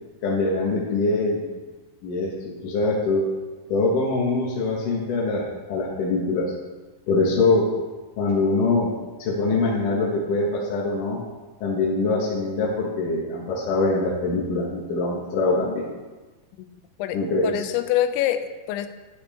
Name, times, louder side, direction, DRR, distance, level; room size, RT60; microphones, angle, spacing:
voice 1, 0.2-1.5 2.0-3.2 3.7-6.5 7.1-7.7 8.2-11.2 11.6-15.9 17.1-17.6, left 3 dB, 60° left, -4 dB, 2.4 m, -23 dB
voice 2, 16.6-18.9, left 12 dB, 90° left, 10 dB, 2.9 m, -26 dB
10.5 x 10.0 x 3.5 m, 1.2 s
omnidirectional pair, 5.3 m